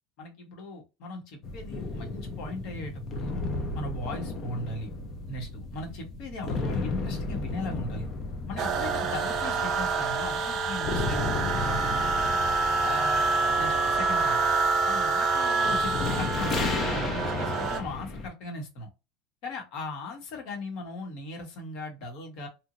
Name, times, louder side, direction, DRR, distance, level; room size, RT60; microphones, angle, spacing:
voice 1, 0.2-3.3 3.7-4.9 5.3-8.1 8.5-12.2 12.8-13.3 13.5-14.5 14.9-18.9 19.4-22.5, left 2 dB, 50° left, 2 dB, 1.3 m, -38 dB
sound 1, 1.4-18.3, left 3 dB, 30° left, 0.5 m, -34 dB
sound 2, 8.6-17.8, right 4 dB, 30° right, 0.5 m, -27 dB
3.0 x 2.5 x 2.5 m, 0.26 s
supercardioid pair, 165°, 0 cm